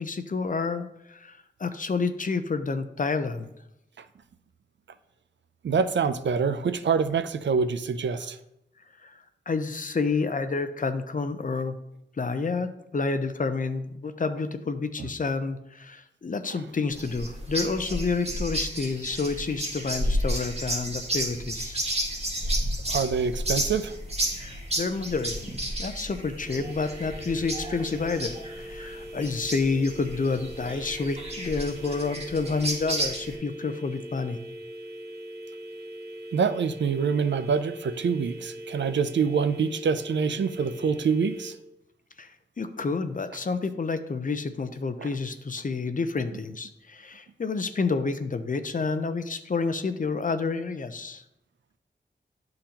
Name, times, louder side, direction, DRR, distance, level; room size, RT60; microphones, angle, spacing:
voice 1, 0.0-3.5 9.0-11.8 12.2-21.8 24.4-25.5 25.8-34.4 42.2-42.3 42.6-51.2, left 4 dB, 45° left, 10 dB, 0.6 m, -29 dB
voice 2, 5.6-8.4 22.9-23.9 36.3-41.5, right 6 dB, 80° right, 12 dB, 0.5 m, -25 dB
sound 1, 16.9-33.4, right 1 dB, 35° right, 1.8 m, -32 dB
sound 2, 26.4-41.5, equal, 60° right, 1.1 m, -41 dB
11.5 x 3.9 x 2.9 m, 0.82 s
wide cardioid pair, 80°, 19 cm